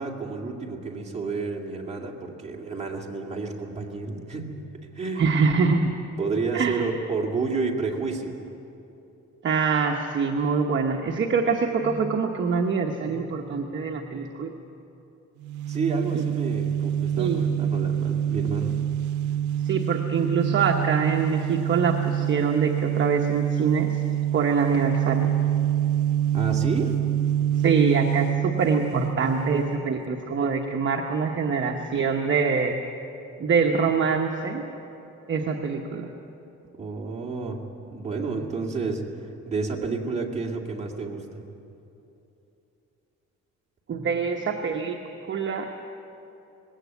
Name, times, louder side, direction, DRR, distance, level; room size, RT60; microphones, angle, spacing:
voice 1, 0.0-4.5 4.9-5.4 6.2-8.4 15.7-18.8 26.3-27.0 36.8-41.4, right 4 dB, 20° right, 0 dB, 2.2 m, -30 dB
voice 2, 5.2-5.9 6.5-6.8 9.4-14.5 16.1-16.2 17.2-17.7 19.6-24.0 24.3-25.3 27.6-32.7 33.4-34.6 35.3-36.1 43.9-45.0 45.3-45.7, right 5 dB, 40° right, 2 dB, 1.0 m, -24 dB
sound 1, 15.4-29.9, right 10 dB, 85° right, 0.5 m, -26 dB
20.0 x 17.0 x 8.3 m, 2.9 s
cardioid pair, 155°, 29 cm